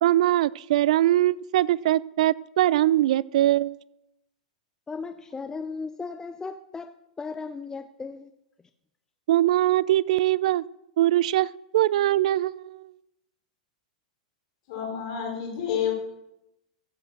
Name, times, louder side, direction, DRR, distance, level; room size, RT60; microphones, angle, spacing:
voice 1, 0.0-3.8 9.3-10.6 11.0-12.8, right 14 dB, 65° right, 0.4 m, -22 dB
voice 2, 4.9-8.3, left 4 dB, 15° left, 0.5 m, -36 dB
voice 3, 14.7-15.9, left 8 dB, 55° left, 5.2 m, -29 dB
14.5 x 8.0 x 6.2 m
hypercardioid pair, 110°, 4 cm